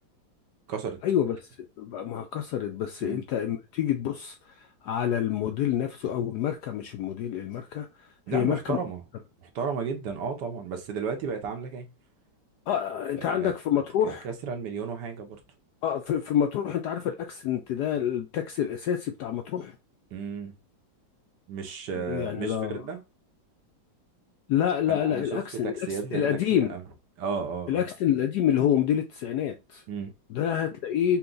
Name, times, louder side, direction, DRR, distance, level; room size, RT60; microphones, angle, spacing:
voice 1, 1.0-4.4 4.8-7.9 8.3-8.8 12.7-14.2 15.8-19.8 22.0-22.8 24.5-26.7 27.7-29.8 30.3-31.2, left 10 dB, 75° left, 0.9 m, -27 dB
voice 2, 8.3-9.0 9.4-11.9 13.2-13.5 14.0-15.4 20.1-20.5 21.5-23.0 24.9-26.8 27.2-27.8 29.9-30.1, right 5 dB, 65° right, 1.3 m, -33 dB
5.7 x 2.2 x 3.8 m
omnidirectional pair, 2.1 m